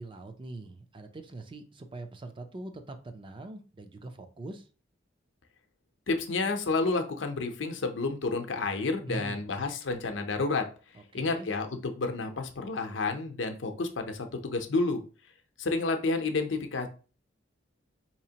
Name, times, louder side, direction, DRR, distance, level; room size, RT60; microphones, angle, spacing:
voice 1, 0.0-4.6 9.1-9.4 11.1-11.5, right 2 dB, 25° right, 7 dB, 0.5 m, -42 dB
voice 2, 6.1-10.7 11.1-15.0 15.6-16.9, left 3 dB, 75° left, 5 dB, 0.6 m, -30 dB
4.2 x 2.9 x 2.8 m, 0.35 s
head